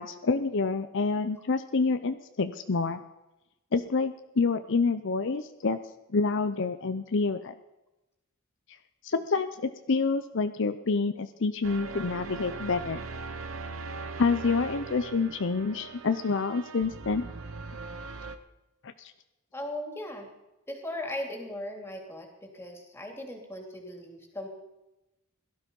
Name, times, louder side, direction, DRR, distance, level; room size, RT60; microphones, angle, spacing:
voice 1, 0.0-3.0 3.7-5.8 6.1-7.5 9.0-13.1 14.2-17.2 18.8-19.1, left 4 dB, 65° left, 10 dB, 0.7 m, -28 dB
sound 1, 11.6-18.4, right 4 dB, 70° right, 1.0 m, -40 dB
voice 2, 19.5-20.3 20.7-24.5, left 1 dB, 10° left, 2 dB, 2.8 m, -38 dB
17.0 x 12.5 x 5.3 m, 0.97 s
head